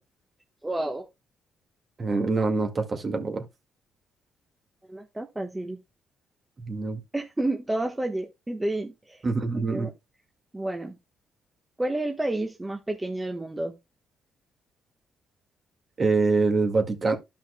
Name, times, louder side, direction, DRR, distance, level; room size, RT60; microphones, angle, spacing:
voice 1, 0.6-1.0 4.9-5.8 7.1-9.2 9.7-9.9 10.5-10.9 11.8-13.7, right 1 dB, 15° right, 1.2 m, -30 dB
voice 2, 2.0-3.4 6.7-7.0 9.2-9.9 16.0-17.2, right 3 dB, 35° right, 1.9 m, -25 dB
13.5 x 5.7 x 2.2 m
cardioid pair, 90°, 0 cm